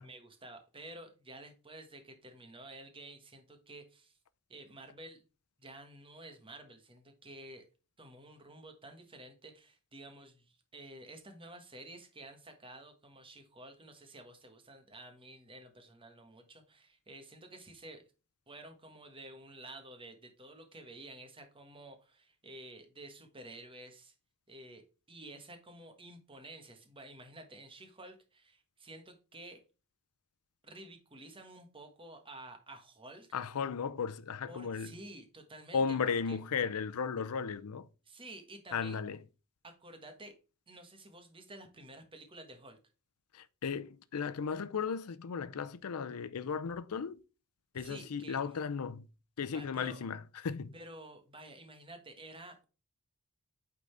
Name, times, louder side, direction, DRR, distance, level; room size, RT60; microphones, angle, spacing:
voice 1, 0.0-4.2 4.5-5.2 5.6-7.7 8.0-18.0 18.5-24.1 24.5-24.8 25.1-29.6 30.6-33.3 34.5-36.0 36.3-36.4 38.1-39.0 39.6-40.4 40.7-42.8 47.8-48.4 49.5-50.0 50.7-52.6, right 1 dB, 25° right, 1.3 m, -51 dB
voice 2, 33.3-34.9 35.7-37.9 38.7-39.2 43.3-47.2 47.7-49.1 49.4-50.7, left 6 dB, 80° left, 0.5 m, -35 dB
8.5 x 3.9 x 3.3 m
head